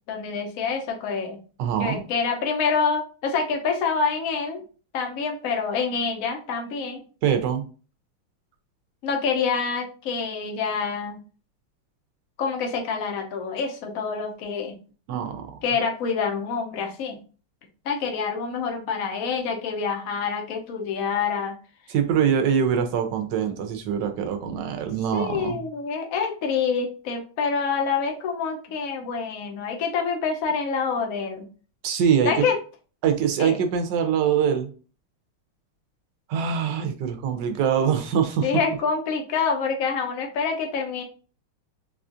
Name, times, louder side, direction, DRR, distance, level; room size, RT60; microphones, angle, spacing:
voice 1, 0.1-1.4 1.8-4.6 4.9-7.0 9.0-11.2 12.4-14.8 15.6-17.2 17.8-21.6 25.1-31.5 32.2-32.6 33.4-33.6 38.4-41.0, left 5 dB, 65° left, 2 dB, 0.9 m, -26 dB
voice 2, 1.6-2.0 7.2-7.6 15.1-15.6 21.9-25.7 31.8-32.4 33.0-34.7 36.3-38.5, right 8 dB, 70° right, 6 dB, 1.1 m, -23 dB
4.2 x 2.4 x 2.5 m, 0.37 s
omnidirectional pair, 2.3 m